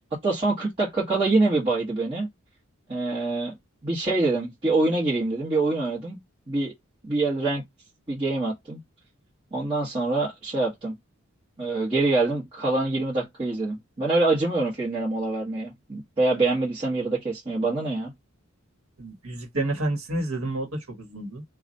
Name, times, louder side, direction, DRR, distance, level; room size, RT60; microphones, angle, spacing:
voice 1, 0.2-2.3 2.9-3.5 3.8-6.2 6.5-6.7 7.0-7.6 8.1-8.8 9.5-11.0 11.6-18.1, right 2 dB, 25° right, 1.4 m, -25 dB
voice 2, 19.0-21.4, right 2 dB, 80° right, 1.3 m, -30 dB
3.0 x 2.4 x 3.9 m
head